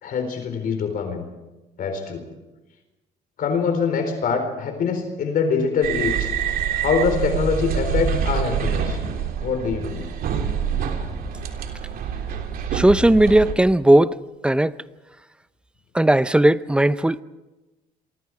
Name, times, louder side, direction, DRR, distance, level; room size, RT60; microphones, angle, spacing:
voice 1, 0.0-1.2 1.8-2.2 3.4-6.3 6.8-9.0 9.4-10.1, left 5 dB, 55° left, 4.2 m, -24 dB
sound 1, 5.8-13.5, right 7 dB, 65° right, 3.3 m, -26 dB
voice 2, 12.7-14.2 14.4-14.8 15.9-17.2, right 1 dB, 5° right, 0.7 m, -16 dB
27.5 x 24.0 x 4.9 m
cardioid pair, 110°, 17 cm